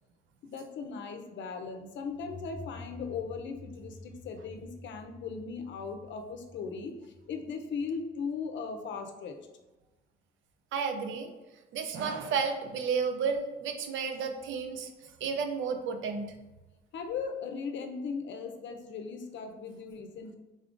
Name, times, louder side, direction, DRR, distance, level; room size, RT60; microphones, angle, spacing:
voice 1, 0.4-7.0 7.3-9.4 16.9-20.4, left 5 dB, 70° left, 5 dB, 0.6 m, -38 dB
sound 1, 2.0-8.6, left 2 dB, 20° left, 0.8 m, -50 dB
voice 2, 10.7-11.3 11.7-16.3, right 5 dB, 75° right, 6 dB, 0.5 m, -32 dB
3.9 x 3.5 x 2.5 m, 1.1 s
cardioid pair, 90°, 20 cm